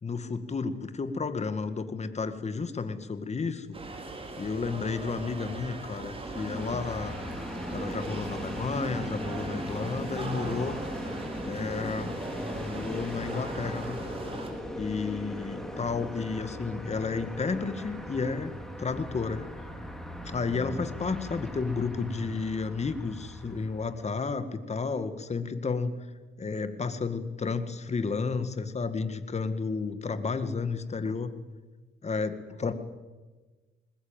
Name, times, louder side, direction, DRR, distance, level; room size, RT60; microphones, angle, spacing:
voice 1, 0.0-3.8 4.4-7.2 7.7-10.8 11.4-12.1 12.5-14.0 14.8-18.5 18.8-19.5 20.3-26.0 26.4-31.3 32.0-32.7, left 4 dB, 35° left, 10 dB, 2.0 m, -32 dB
sound 1, 3.7-14.5, right 2 dB, 30° right, 4.8 m, -40 dB
Train, 6.1-24.2, equal, ahead, 3.6 m, -38 dB
21.0 x 20.5 x 9.1 m, 1.3 s
cardioid pair, 90°, 20 cm